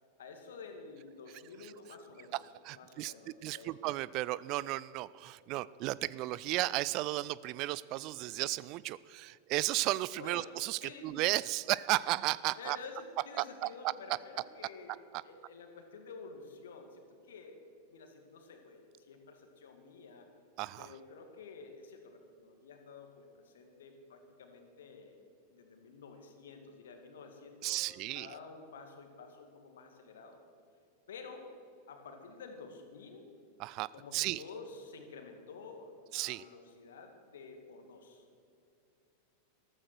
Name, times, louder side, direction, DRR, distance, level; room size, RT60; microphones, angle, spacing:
voice 1, 0.2-2.4 2.7-3.8 10.2-10.5 10.8-11.1 12.6-15.0 15.2-17.6 17.9-20.3 20.8-30.4 31.1-31.5 31.9-33.3 33.9-38.2, left 4 dB, 60° left, 5 dB, 2.3 m, -50 dB
voice 2, 2.6-3.1 3.4-12.8 13.4-13.9 20.6-20.9 27.6-28.3 33.6-34.4 36.1-36.4, right 18 dB, 40° right, 20 dB, 0.3 m, -34 dB
14.0 x 13.5 x 6.1 m, 2.5 s
figure-of-eight pair, 90°, 0 cm